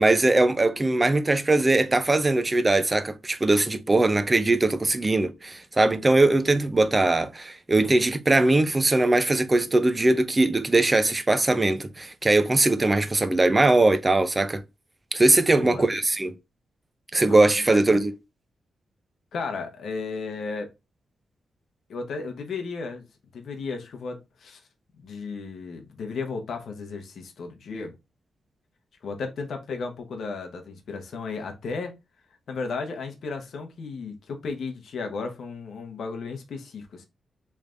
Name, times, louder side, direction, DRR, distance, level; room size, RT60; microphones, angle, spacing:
voice 1, 0.0-14.6 15.1-16.3 17.1-18.1, right 2 dB, 20° right, 0.4 m, -21 dB
voice 2, 15.6-16.0 17.2-17.8 19.3-20.7 21.9-23.0 23.3-24.6 25.0-28.0 29.0-31.9 32.5-37.0, left 4 dB, 65° left, 0.8 m, -34 dB
3.3 x 3.2 x 2.5 m
wide cardioid pair, 150°, 0 cm